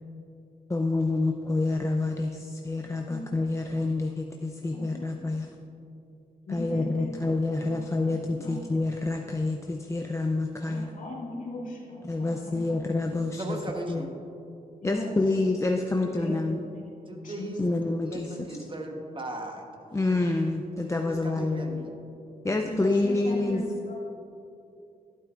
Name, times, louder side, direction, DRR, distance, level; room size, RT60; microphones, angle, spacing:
voice 1, 0.7-5.5 6.5-10.9 12.0-13.6 13.9-14.0 14.8-16.6 17.6-18.6 19.9-21.8 22.4-23.6, left 2 dB, 20° left, 2 dB, 0.5 m, -28 dB
voice 2, 2.8-3.2 4.9-5.0 6.4-7.3 7.7-8.1 8.4-8.6 10.7-12.8 14.8-15.1 16.2-16.4 17.2-17.5 22.6-24.0, left 2 dB, 60° left, -4 dB, 2.1 m, -38 dB
voice 3, 13.4-14.1 16.2-16.5 17.1-17.6 18.0-19.6 21.1-21.9, right 2 dB, 35° right, 2 dB, 1.1 m, -37 dB
11.5 x 8.4 x 2.5 m, 2.7 s
cardioid pair, 60°, 15 cm